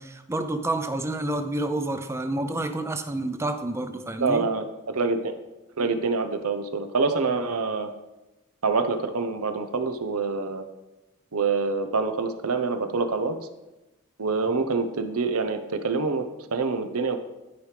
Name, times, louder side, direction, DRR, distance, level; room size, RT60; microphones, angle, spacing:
voice 1, 0.0-4.5, right 2 dB, 10° right, 8 dB, 0.4 m, -29 dB
voice 2, 4.2-5.3 5.8-7.9 8.6-10.6 11.3-13.4 14.2-16.2 16.5-17.2, right 4 dB, 85° right, 8 dB, 0.8 m, -26 dB
12.5 x 5.0 x 3.3 m, 1.0 s
head